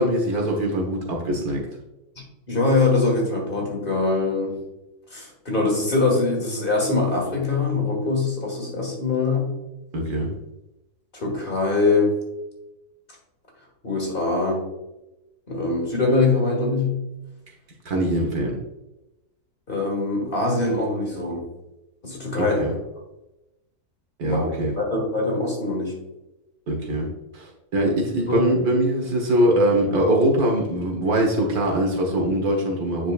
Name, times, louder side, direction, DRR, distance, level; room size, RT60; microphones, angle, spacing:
voice 1, 0.0-1.7 9.9-10.3 17.9-18.6 22.4-22.7 24.2-24.7 26.7-27.1 27.3-33.1, right 1 dB, 70° right, 0 dB, 1.8 m, -22 dB
voice 2, 2.2-4.6 5.1-9.6 11.1-12.2 13.8-14.6 15.5-17.1 19.7-21.5 22.0-22.6 24.2-24.4 24.8-25.9 27.8-27.9 28.3-28.5, left 3 dB, 35° left, -1 dB, 1.8 m, -23 dB
9.5 x 4.9 x 2.4 m, 0.96 s
omnidirectional pair, 1.7 m